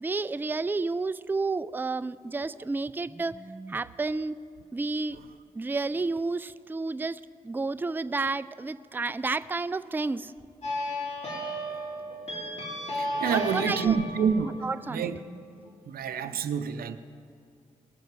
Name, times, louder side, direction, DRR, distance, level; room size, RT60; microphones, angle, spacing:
voice 1, 0.0-4.4 4.7-5.2 5.5-10.3 13.2-14.0 14.6-15.1, right 3 dB, 15° right, 14 dB, 0.3 m, -31 dB
sound 1, 10.6-15.7, equal, 45° left, 3.0 m, -35 dB
voice 2, 12.9-14.5 14.9-15.2 15.8-17.0, right 7 dB, 90° right, 11 dB, 0.5 m, -28 dB
19.5 x 6.6 x 4.6 m, 2.5 s
cardioid pair, 45°, 15 cm